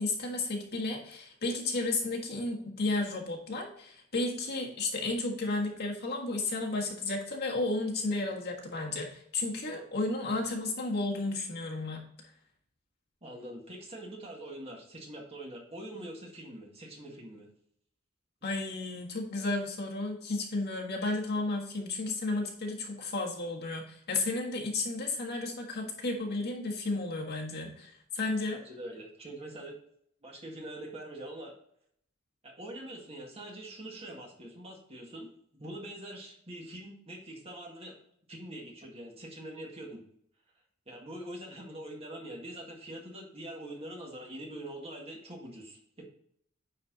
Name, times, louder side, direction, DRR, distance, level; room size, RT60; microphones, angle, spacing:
voice 1, 0.0-12.1 18.4-28.6, left 2 dB, 50° left, 0 dB, 1.5 m, -33 dB
voice 2, 13.2-17.5 28.5-29.8 30.2-31.6 32.4-35.3 35.5-38.0 38.3-40.0 40.9-46.0, right 1 dB, 30° right, -1 dB, 1.8 m, -44 dB
9.5 x 4.3 x 3.9 m, 0.68 s
head